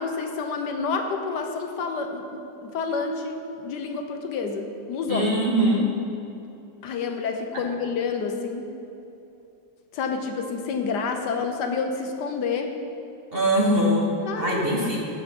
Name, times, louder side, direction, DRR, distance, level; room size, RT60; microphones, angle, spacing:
voice 1, 0.0-5.3 6.8-8.6 9.9-12.8 14.3-15.0, left 4 dB, 75° left, 5 dB, 1.3 m, -29 dB
voice 2, 5.1-5.9 13.3-14.1 14.4-15.0, equal, 35° right, -3 dB, 1.3 m, -22 dB
15.5 x 6.9 x 3.7 m, 2.8 s
omnidirectional pair, 1.9 m